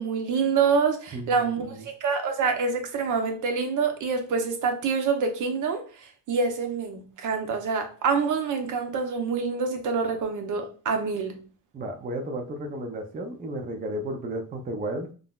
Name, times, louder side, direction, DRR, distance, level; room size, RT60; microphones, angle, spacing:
voice 1, 0.0-5.8 6.3-11.4, right 5 dB, 60° right, 0.7 m, -26 dB
voice 2, 1.1-1.8 11.7-15.1, right 1 dB, 25° right, 0.5 m, -33 dB
3.7 x 2.0 x 2.3 m
cardioid pair, 100°, 35 cm